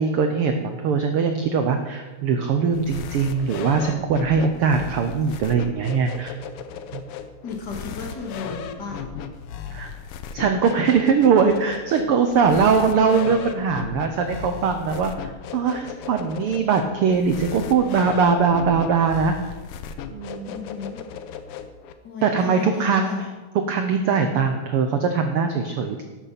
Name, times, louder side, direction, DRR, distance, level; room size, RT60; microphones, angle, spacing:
voice 1, 0.0-6.3 6.9-7.0 9.7-9.9 10.3-19.3 20.1-20.5 22.2-23.3 23.7-26.0, right 5 dB, 85° right, 6 dB, 1.2 m, -21 dB
sound 1, 2.7-21.9, left 7 dB, 85° left, 1.3 m, -36 dB
voice 2, 7.4-9.1 20.5-21.0 22.0-23.3, left 4 dB, 40° left, 0 dB, 2.2 m, -34 dB
12.5 x 8.1 x 5.9 m, 1.2 s
omnidirectional pair, 3.5 m